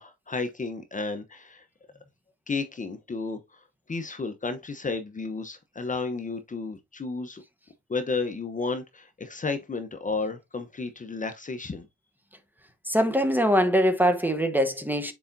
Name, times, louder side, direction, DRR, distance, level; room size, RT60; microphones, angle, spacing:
voice 1, 0.0-1.6 2.5-3.6 3.9-7.4 7.9-11.9, left 4 dB, 25° left, 0.9 m, -32 dB
voice 2, 12.9-15.1, equal, 5° right, 1.0 m, -23 dB
6.9 x 5.0 x 2.7 m
cardioid pair, 90°, 30 cm